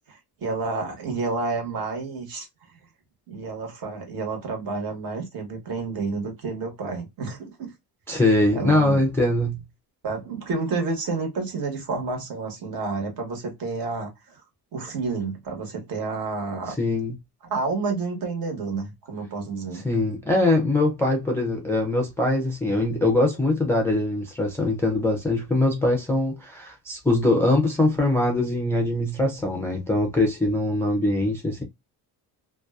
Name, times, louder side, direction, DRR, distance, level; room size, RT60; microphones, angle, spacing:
voice 1, 0.1-2.5 3.3-7.7 8.1-8.2 8.5-9.0 10.0-14.4 14.7-16.8 17.5-19.8, right 4 dB, 60° right, 1.2 m, -30 dB
voice 2, 8.1-9.6 16.8-17.1 19.8-31.6, left 2 dB, 5° left, 0.3 m, -22 dB
2.5 x 2.3 x 2.2 m
cardioid pair, 165°, 40 cm